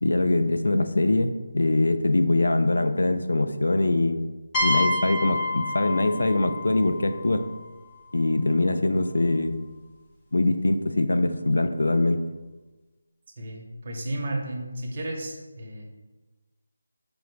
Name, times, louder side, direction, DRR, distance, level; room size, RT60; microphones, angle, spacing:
voice 1, 0.0-4.2 4.6-7.4 8.1-9.6 10.3-12.2, left 2 dB, 85° left, 8 dB, 0.4 m, -23 dB
sound 1, 4.5-8.2, left 2 dB, 15° left, 0.5 m, -29 dB
voice 2, 13.3-15.8, right 1 dB, 35° right, 1 dB, 0.7 m, -33 dB
4.9 x 2.0 x 4.5 m, 1.2 s
figure-of-eight pair, 170°, 0 cm